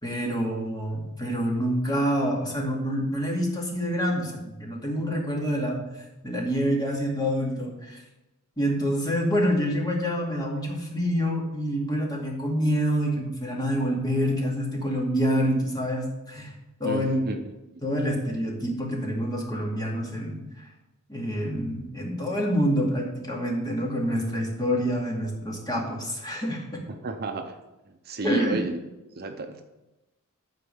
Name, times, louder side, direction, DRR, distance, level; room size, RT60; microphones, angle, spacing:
voice 1, 0.0-8.0 8.6-16.5 16.8-17.2 17.8-20.7 21.1-26.8 28.2-28.6, equal, 20° left, -3 dB, 2.4 m, -27 dB
voice 2, 16.8-17.5 26.9-27.6 28.0-28.8 29.1-29.6, right 2 dB, 45° right, 6 dB, 0.7 m, -32 dB
12.0 x 4.5 x 7.0 m, 1.0 s
head